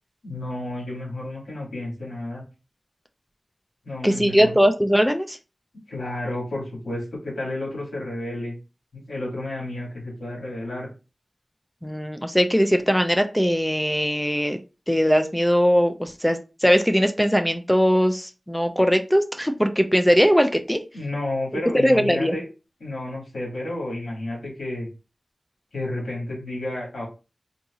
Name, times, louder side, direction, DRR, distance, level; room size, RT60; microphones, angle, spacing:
voice 1, 0.2-2.4 3.8-4.5 5.9-8.6 8.9-10.9 20.9-22.4 22.8-24.9 25.7-27.0, left 1 dB, 90° left, -4 dB, 1.8 m, -31 dB
voice 2, 4.0-5.4 11.8-14.6 14.9-20.8 21.8-22.3, equal, 5° left, 7 dB, 0.4 m, -20 dB
3.9 x 2.7 x 2.4 m, 0.32 s
wide cardioid pair, 55°, 0 cm